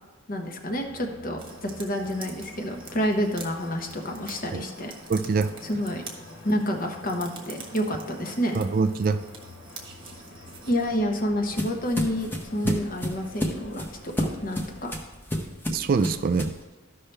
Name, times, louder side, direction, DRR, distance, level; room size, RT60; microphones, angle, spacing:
voice 1, 0.3-4.9 5.6-6.0 6.4-8.6 10.7-14.1 14.4-14.9, equal, 40° left, 3 dB, 1.0 m, -29 dB
sound 1, 0.7-14.9, left 2 dB, 65° left, 1.0 m, -48 dB
sound 2, 1.4-11.0, right 4 dB, 25° right, 1.2 m, -46 dB
voice 2, 5.1-5.5 8.5-9.2 12.6-12.8 15.7-16.5, right 4 dB, 45° right, 10 dB, 0.3 m, -24 dB
sound 3, 10.6-16.6, equal, 10° left, 0.8 m, -31 dB
13.5 x 5.5 x 3.3 m, 1.3 s
head